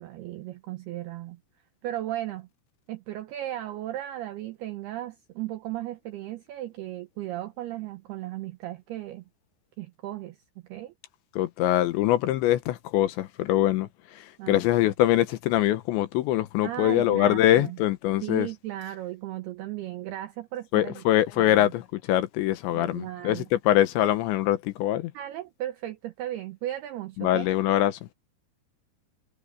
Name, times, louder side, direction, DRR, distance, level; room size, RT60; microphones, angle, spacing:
voice 1, 0.0-1.4 1.8-2.5 2.9-9.2 9.8-10.4 10.7-10.9 14.4-14.6 16.6-17.8 18.2-21.0 21.4-21.7 22.7-23.5 25.1-27.5, right 14 dB, 80° right, 2.3 m, -36 dB
voice 2, 11.4-13.9 14.5-18.5 20.7-21.8 22.1-25.1 27.2-28.0, left 13 dB, 75° left, 3.0 m, -23 dB
omnidirectional pair, 5.6 m